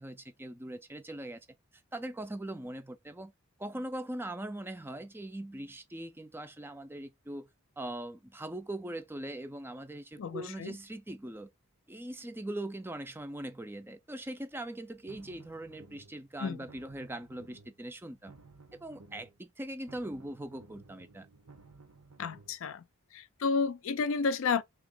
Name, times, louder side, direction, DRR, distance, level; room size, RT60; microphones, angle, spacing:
voice 1, 0.0-1.5 1.9-3.3 3.6-7.5 7.8-11.5 11.9-18.3 18.8-21.3, right 1 dB, 10° right, 0.4 m, -41 dB
voice 2, 10.2-10.8 16.4-16.7 22.2-22.8 23.1-24.6, left 5 dB, 65° left, 0.4 m, -31 dB
sound 1, 14.9-16.2 16.5-17.8 18.1-19.4 19.7-22.5, right 3 dB, 85° right, 0.9 m, -56 dB
3.4 x 2.9 x 3.7 m
head